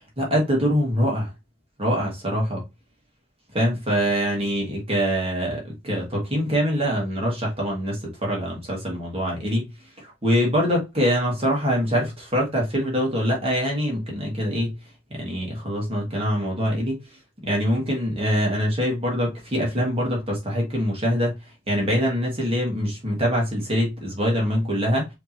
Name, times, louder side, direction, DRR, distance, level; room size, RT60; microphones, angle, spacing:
voice 1, 0.2-1.3 1.8-2.6 3.5-9.7 10.0-14.7 15.2-17.0 17.4-21.3 21.7-25.1, equal, 30° right, 1.6 m, -24 dB
5.1 x 2.9 x 2.7 m
head